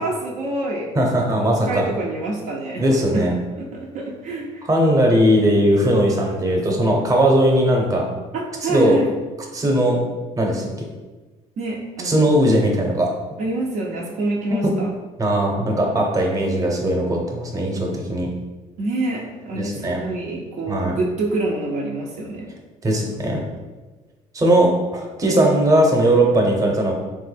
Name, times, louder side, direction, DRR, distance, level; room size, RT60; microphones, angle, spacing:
voice 1, 0.0-1.0 1.4-3.3 3.6-4.6 8.3-9.1 11.6-12.3 13.4-14.9 18.8-22.5, right 2 dB, 65° right, -2 dB, 0.5 m, -27 dB
voice 2, 0.9-1.9 2.8-3.3 4.7-8.0 8.6-9.0 9.5-10.0 10.4-10.7 12.0-13.1 14.5-14.6 15.2-18.3 19.5-20.0 20.7-21.0 22.8-23.4 24.3-26.9, right 1 dB, 25° right, 0 dB, 0.8 m, -18 dB
3.3 x 2.1 x 3.2 m, 1.3 s
supercardioid pair, 85°, 13 cm